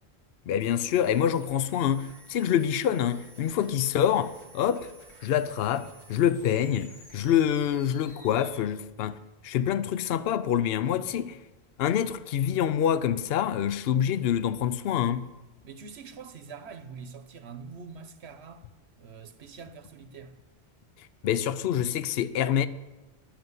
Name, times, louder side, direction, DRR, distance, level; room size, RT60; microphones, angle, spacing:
voice 1, 0.5-4.9 5.2-9.2 9.4-11.4 11.8-15.3 21.2-22.7, left 9 dB, 70° left, 0.8 m, -26 dB
sound 1, 0.6-8.6, right 1 dB, 25° left, 2.9 m, -53 dB
voice 2, 10.9-11.3 15.6-18.6 19.0-20.4, right 5 dB, 80° right, 1.2 m, -45 dB
10.5 x 7.8 x 9.4 m
omnidirectional pair, 1.1 m